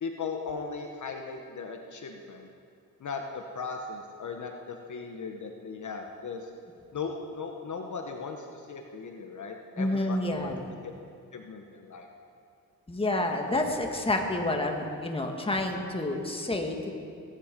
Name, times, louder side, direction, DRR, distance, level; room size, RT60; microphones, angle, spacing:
voice 1, 0.0-2.5 3.0-6.5 6.9-10.6 10.8-10.9 11.3-12.1, left 4 dB, 50° left, 3 dB, 1.2 m, -38 dB
voice 2, 9.8-10.6 12.9-16.9, left 2 dB, 15° left, 2 dB, 1.8 m, -29 dB
21.5 x 10.5 x 5.3 m, 2.4 s
cardioid pair, 95°, 37 cm